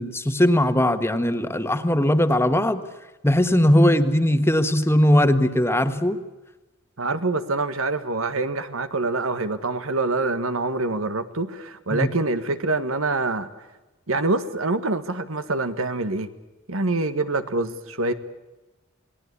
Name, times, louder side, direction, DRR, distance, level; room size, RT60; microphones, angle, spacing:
voice 1, 0.0-2.8 3.2-6.2 11.9-12.1, left 1 dB, 10° left, 10 dB, 1.4 m, -19 dB
voice 2, 7.0-13.5 14.1-16.3 16.7-18.1, right 2 dB, 85° right, 11 dB, 1.7 m, -25 dB
28.0 x 19.5 x 8.4 m, 1.1 s
head